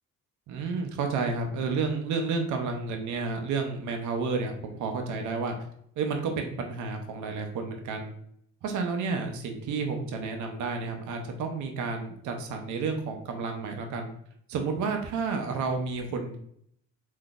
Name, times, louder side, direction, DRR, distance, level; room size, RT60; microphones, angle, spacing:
voice 1, 0.5-5.6 6.0-8.1 8.6-14.1 14.5-16.4, right 4 dB, 75° right, 4 dB, 0.6 m, -31 dB
3.7 x 2.6 x 2.3 m, 0.68 s
cardioid pair, 90°, 30 cm